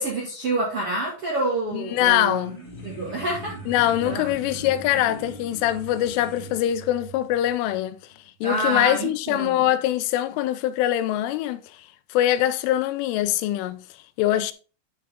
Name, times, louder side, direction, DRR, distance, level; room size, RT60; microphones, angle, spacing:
voice 1, 0.0-2.5 2.8-3.6 4.0-4.3 8.4-9.7, right 2 dB, 50° right, 1.7 m, -27 dB
voice 2, 1.7-2.6 3.7-8.0 8.4-11.6 12.1-13.8 14.2-14.5, left 13 dB, 85° left, 3.1 m, -23 dB
sound 1, 1.8-6.7, left 3 dB, 20° left, 2.1 m, -42 dB
sound 2, 2.5-8.5, right 13 dB, 85° right, 3.3 m, -45 dB
9.7 x 6.2 x 3.6 m
omnidirectional pair, 5.6 m